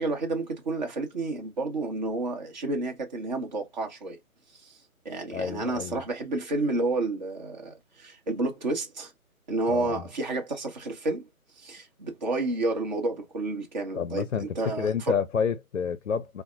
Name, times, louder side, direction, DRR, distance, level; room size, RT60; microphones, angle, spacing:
voice 1, 0.0-4.2 4.6-4.7 5.0-9.1 9.5-11.3 11.6-14.3 14.5-15.2, right 2 dB, 30° right, 1.1 m, -30 dB
voice 2, 5.3-6.0 9.7-10.1 13.9-16.4, left 6 dB, 60° left, 0.6 m, -29 dB
4.5 x 2.1 x 2.4 m
figure-of-eight pair, 140°, 43 cm